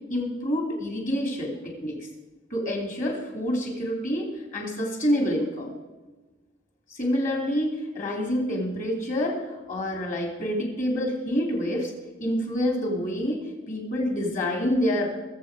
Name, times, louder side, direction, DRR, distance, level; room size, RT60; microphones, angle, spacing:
voice 1, 0.1-2.0 2.5-5.7 6.9-11.9 12.2-15.1, equal, 40° left, 1 dB, 3.2 m, -27 dB
20.5 x 7.6 x 5.1 m, 1.2 s
head